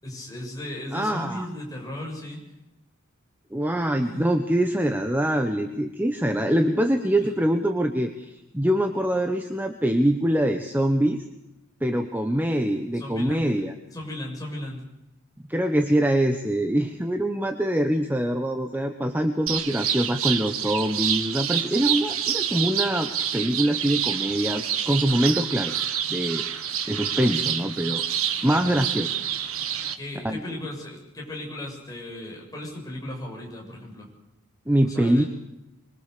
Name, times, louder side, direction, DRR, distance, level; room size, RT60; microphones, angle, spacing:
voice 1, 0.0-2.4 4.1-4.3 12.9-13.5 13.9-14.8 28.5-28.8 30.0-34.1 34.8-35.3, left 1 dB, 15° left, -1 dB, 7.3 m, -36 dB
voice 2, 0.9-1.5 3.5-11.2 11.8-13.7 15.5-25.7 26.1-26.4 26.9-28.0 28.4-29.1 30.2-30.4 34.7-35.3, right 1 dB, 10° right, 5 dB, 1.2 m, -24 dB
best bird spot ever, 19.5-30.0, right 9 dB, 80° right, 1.6 m, -28 dB
25.0 x 22.5 x 6.9 m, 0.90 s
head